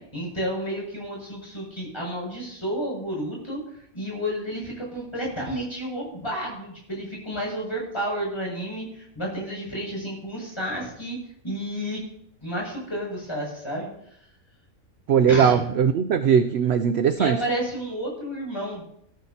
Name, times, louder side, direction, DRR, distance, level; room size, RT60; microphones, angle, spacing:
voice 1, 0.1-3.6 3.9-11.2 11.4-12.0 12.4-13.9 15.3-15.7 17.2-18.8, equal, 20° left, -3 dB, 7.0 m, -31 dB
voice 2, 15.1-17.4, right 7 dB, 60° right, 9 dB, 0.7 m, -19 dB
18.0 x 13.0 x 2.9 m, 0.71 s
omnidirectional pair, 1.5 m